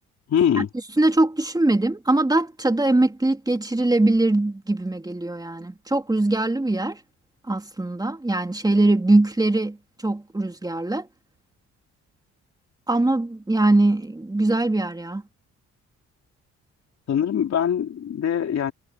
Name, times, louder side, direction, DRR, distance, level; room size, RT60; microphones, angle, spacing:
voice 1, 0.3-0.7 17.1-18.7, left 8 dB, 60° left, 3.9 m, -22 dB
voice 2, 1.0-7.0 7.5-9.8 10.0-11.1 12.9-15.2, right 2 dB, 15° right, 3.4 m, -21 dB
cardioid pair, 90°, 30 cm